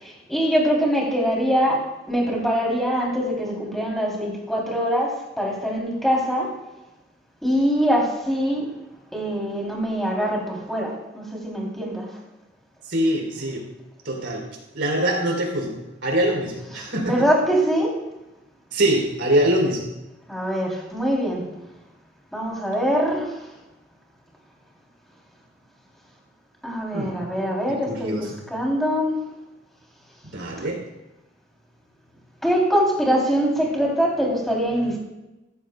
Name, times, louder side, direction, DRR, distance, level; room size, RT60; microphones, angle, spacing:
voice 1, 0.0-6.5 7.4-8.7 9.1-12.0 16.8-17.9 20.3-21.5 22.3-23.4 26.6-29.2 32.4-35.0, equal, ahead, -2 dB, 3.0 m, -23 dB
voice 2, 12.9-13.6 14.1-14.4 14.7-17.3 18.7-19.9 26.9-27.2 27.9-28.5 30.3-30.8, right 1 dB, 70° right, 0 dB, 3.5 m, -23 dB
14.5 x 14.0 x 2.2 m, 1.0 s
head